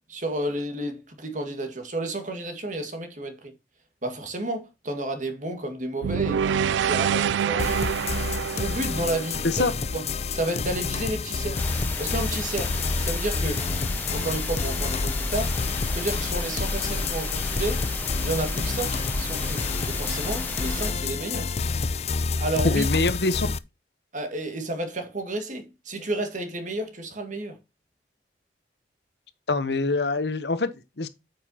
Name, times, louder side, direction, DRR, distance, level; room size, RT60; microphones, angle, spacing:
voice 1, 0.1-3.5 4.0-7.7 8.5-9.7 9.9-10.1 10.3-11.7 12.0-13.6 14.1-15.6 15.9-17.8 18.2-21.5 22.4-22.8 24.1-27.6, right 2 dB, 45° right, 1.9 m, -31 dB
sound 1, 6.0-10.3, right 8 dB, 90° right, 0.3 m, -26 dB
sound 2, 7.6-23.6, left 4 dB, 35° left, 0.5 m, -29 dB
sound 3, 11.5-20.9, left 1 dB, 10° left, 1.1 m, -32 dB
voice 2, 22.6-23.5 29.5-31.1, left 3 dB, 70° left, 1.0 m, -24 dB
9.0 x 6.6 x 2.8 m
head